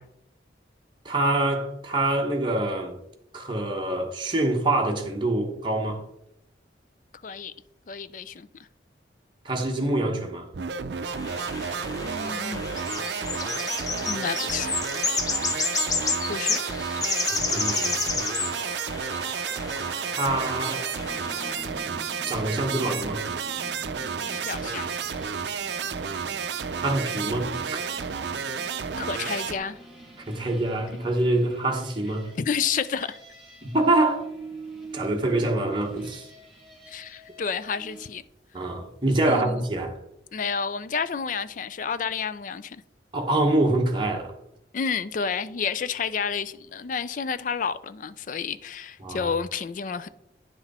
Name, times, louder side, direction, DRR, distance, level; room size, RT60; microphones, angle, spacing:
voice 1, 1.0-2.9 3.3-6.0 9.4-10.5 17.3-18.2 18.6-18.8 20.1-20.9 22.3-23.2 26.8-27.8 30.3-32.3 33.6-34.2 34.9-36.3 38.5-40.0 43.1-44.3 49.0-49.3, right 2 dB, 25° right, 1.2 m, -25 dB
voice 2, 7.2-7.5 7.9-8.5 12.0-12.7 14.1-14.7 16.3-16.6 24.2-24.9 29.0-29.8 32.4-33.2 36.9-38.2 39.2-39.6 40.3-42.8 44.7-50.1, left 6 dB, 45° left, 0.4 m, -30 dB
sound 1, 10.5-29.6, right 6 dB, 70° right, 0.5 m, -31 dB
sound 2, 11.1-21.7, left 4 dB, 20° left, 0.7 m, -30 dB
sound 3, 20.9-38.1, right 2 dB, ahead, 3.6 m, -44 dB
9.9 x 6.0 x 4.2 m
head